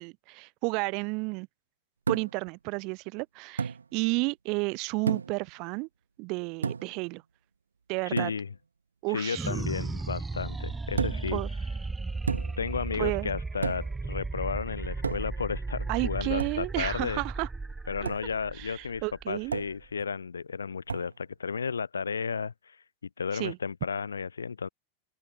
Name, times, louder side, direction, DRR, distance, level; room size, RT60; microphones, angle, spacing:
voice 1, 0.0-1.5 2.1-5.9 6.2-7.2 7.9-8.3 9.0-9.5 11.3-11.5 13.0-13.3 15.9-17.5 18.0-18.1 18.5-19.5 23.3-23.6, right 29 dB, 45° right, 4.9 m, -32 dB
sound 1, 2.1-2.5 3.6-3.8 5.1-5.5 6.6-7.0 8.2-8.5 11.0-11.4 12.3-12.7 13.6-14.0 15.0-15.5 16.4-16.6 18.1-18.3 19.5-19.8 20.9-21.2, right 5 dB, 75° right, 5.2 m, -32 dB
voice 2, 8.1-8.5 9.1-11.4 12.6-17.2 17.9-22.8 23.2-24.7, left 5 dB, 75° left, 4.3 m, -33 dB
sound 2, 9.3-20.0, right 3 dB, 10° right, 2.5 m, -35 dB
open air
figure-of-eight pair, 90°, 0 cm